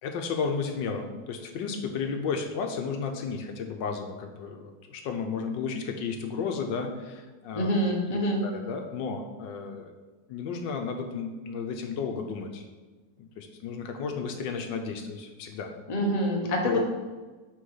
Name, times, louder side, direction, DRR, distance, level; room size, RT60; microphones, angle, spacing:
voice 1, 0.0-7.7 8.1-9.9 10.3-12.6 13.2-15.7 16.6-16.9, left 5 dB, 80° left, 4 dB, 1.4 m, -33 dB
voice 2, 7.5-8.4 15.9-16.9, equal, 25° left, 0 dB, 0.9 m, -26 dB
6.3 x 3.9 x 5.6 m, 1.3 s
omnidirectional pair, 2.0 m